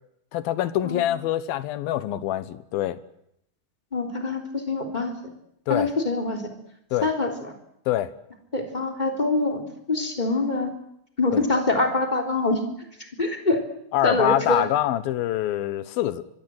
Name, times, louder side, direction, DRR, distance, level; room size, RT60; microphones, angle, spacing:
voice 1, 0.3-3.0 5.7-5.9 6.9-7.1 7.9-8.1 11.3-11.4 13.9-16.2, left 13 dB, 80° left, 14 dB, 2.9 m, -25 dB
voice 2, 3.9-5.1 5.7-6.4 7.0-7.3 8.5-9.6 9.9-10.7 11.2-12.6 13.2-13.6 14.0-14.6, left 2 dB, 10° left, 3 dB, 3.3 m, -24 dB
24.5 x 24.0 x 7.8 m, 0.77 s
omnidirectional pair, 4.2 m